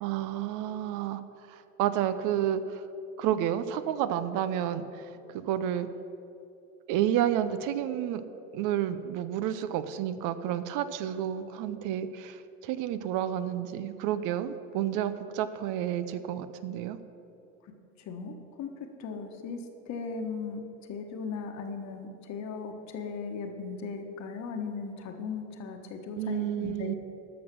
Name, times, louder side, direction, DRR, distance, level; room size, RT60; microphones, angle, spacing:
voice 1, 0.0-1.2 1.5-2.8 3.2-5.9 6.9-8.2 8.5-17.0 26.2-27.0, right 10 dB, 60° right, 12 dB, 0.7 m, -30 dB
voice 2, 18.1-18.7 19.0-20.6 20.9-27.0, left 5 dB, 50° left, 5 dB, 1.4 m, -37 dB
12.0 x 6.2 x 6.2 m, 2.8 s
supercardioid pair, 90°, 35 cm